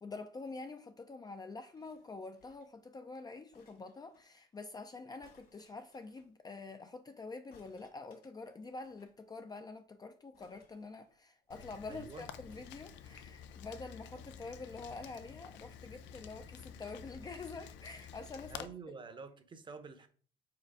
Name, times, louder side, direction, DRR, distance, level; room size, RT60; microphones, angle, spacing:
voice 1, 0.0-18.7, left 3 dB, 20° left, 0.5 m, -47 dB
sound 1, 1.7-2.8 3.5-4.3 5.2-6.3 7.5-9.2 9.5-9.6 9.8-9.9 10.3-11.5 12.5-13.4 14.1-15.1 15.8-15.9, left 3 dB, 60° left, 1.9 m, -68 dB
Rain, 11.5-18.7, left 8 dB, 90° left, 0.6 m, -50 dB
voice 2, 11.9-12.3 18.5-20.1, right 5 dB, 25° right, 0.8 m, -48 dB
4.9 x 4.1 x 4.8 m
cardioid pair, 135°, 18 cm